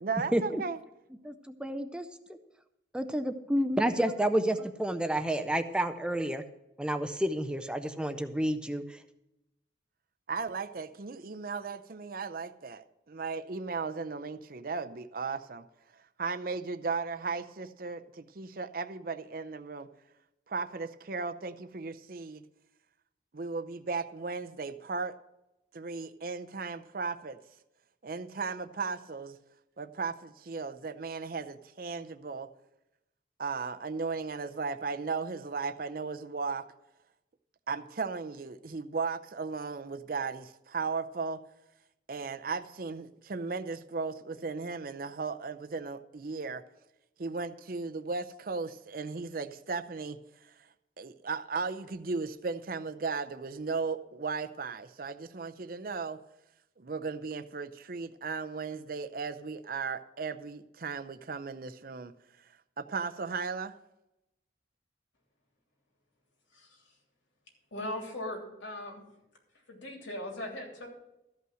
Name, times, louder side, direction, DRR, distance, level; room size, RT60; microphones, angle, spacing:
voice 1, 0.0-0.8 10.3-15.6 16.2-19.9 20.5-22.4 23.3-25.1 25.7-27.4 28.0-29.4 29.8-32.5 33.4-36.6 37.7-41.4 42.1-46.6 47.2-50.5 51.0-56.2 56.8-62.1 62.8-63.7, right 4 dB, 50° right, 9 dB, 0.6 m, -36 dB
voice 2, 1.2-2.0 2.9-6.4 6.8-9.0, right 1 dB, 5° right, 8 dB, 0.5 m, -30 dB
voice 3, 66.5-66.8 67.7-69.0 69.7-70.9, left 1 dB, 90° left, 0 dB, 3.1 m, -39 dB
13.5 x 5.6 x 7.6 m, 0.90 s
head